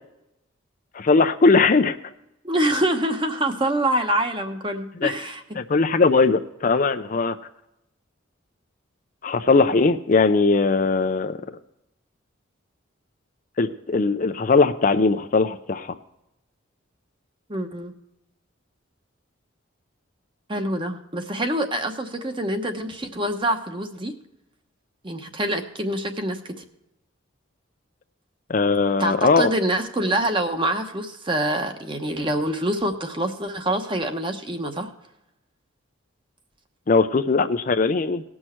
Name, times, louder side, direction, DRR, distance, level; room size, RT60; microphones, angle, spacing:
voice 1, 0.9-2.0 5.0-5.1 5.6-7.4 9.2-11.4 13.6-15.9 28.5-29.5 36.9-38.2, left 4 dB, 40° left, 9 dB, 0.5 m, -19 dB
voice 2, 2.4-5.4 17.5-17.9 20.5-24.1 25.0-26.6 29.0-34.9, right 1 dB, 25° right, 6 dB, 1.0 m, -25 dB
18.5 x 6.3 x 4.4 m, 0.86 s
head